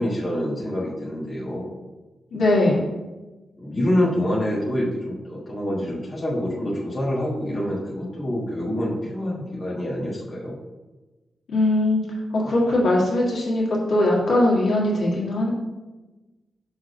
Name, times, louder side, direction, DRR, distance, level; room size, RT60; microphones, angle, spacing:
voice 1, 0.0-1.7 2.7-2.9 3.6-10.6, left 1 dB, 25° left, -6 dB, 1.4 m, -26 dB
voice 2, 2.3-2.8 11.5-12.0 12.3-15.5, left 1 dB, 70° left, -4 dB, 1.7 m, -20 dB
6.4 x 3.7 x 5.2 m, 1.1 s
wide cardioid pair, 150°, 0 cm